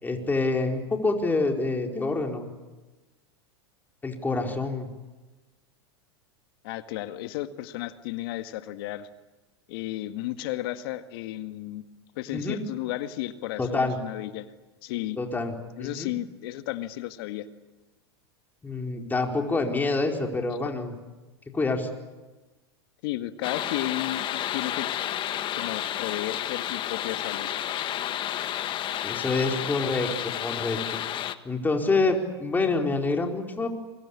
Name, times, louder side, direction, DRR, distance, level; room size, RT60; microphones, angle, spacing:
voice 1, 0.0-2.5 4.0-4.9 12.3-12.6 13.6-14.0 15.2-15.5 15.8-16.1 18.6-20.9 21.5-21.9 29.0-30.1 30.4-31.2 31.4-33.7, left 3 dB, 15° left, 2 dB, 4.6 m, -27 dB
voice 2, 6.6-9.1 9.7-11.9 12.2-14.5 14.8-15.2 15.8-17.5 23.0-24.9 25.5-27.5, left 15 dB, 60° left, 9 dB, 1.9 m, -33 dB
sound 1, 23.4-31.4, left 12 dB, 35° left, 1.5 m, -31 dB
28.0 x 24.0 x 8.6 m, 1.2 s
hypercardioid pair, 105°, 14 cm